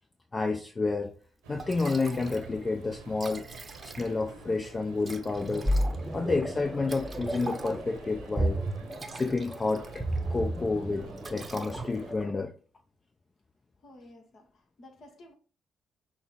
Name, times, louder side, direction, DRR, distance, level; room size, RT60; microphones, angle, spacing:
voice 1, 0.3-1.1 1.5-3.5 3.8-5.7 6.1-8.6 9.1-10.0 10.3-12.5, left 3 dB, 30° left, 0.5 m, -30 dB
Liquid, 1.2-1.3 1.6-2.5 2.8-2.9 3.1-4.3 5.0-8.0 8.7-10.2 10.5-10.8 11.2-12.2, right 3 dB, 35° right, 0.7 m, -44 dB
sound 1, 1.4-12.1, right 4 dB, 85° right, 0.9 m, -49 dB
sound 2, 5.3-12.3, right 1 dB, 10° right, 0.8 m, -33 dB
voice 2, 13.8-15.3, left 1 dB, 60° left, 1.1 m, -53 dB
6.0 x 2.0 x 3.8 m
hypercardioid pair, 45°, 0 cm